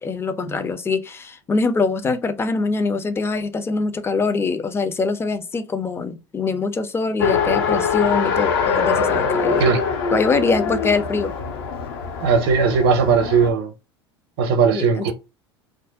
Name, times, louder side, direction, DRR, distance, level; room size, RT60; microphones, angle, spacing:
voice 1, 0.0-9.6 10.1-11.3 14.7-15.1, left 4 dB, 15° left, 0.4 m, -23 dB
Race car auto racing, 7.2-13.5, left 6 dB, 60° left, 0.6 m, -23 dB
voice 2, 12.2-13.7 14.4-15.1, right 5 dB, 60° right, 0.6 m, -18 dB
2.5 x 2.1 x 3.4 m
figure-of-eight pair, 75°, 14 cm